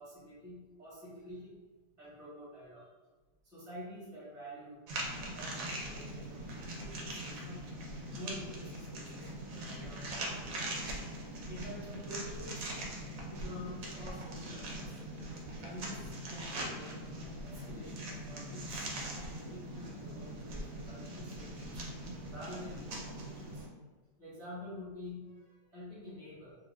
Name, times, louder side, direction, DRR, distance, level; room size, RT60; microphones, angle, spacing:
voice 1, 0.0-1.5 2.0-2.9 3.4-4.8 5.1-6.5 6.8-7.7 8.1-10.8 11.5-12.7 13.3-15.0 15.6-17.0 17.4-18.9 19.2-21.8 22.3-23.6 24.2-26.5, left 1 dB, 10° left, -9 dB, 0.7 m, -48 dB
sound 1, 4.9-23.7, right 1 dB, 65° right, 0.9 m, -41 dB
2.6 x 2.1 x 3.3 m, 1.2 s
omnidirectional pair, 1.7 m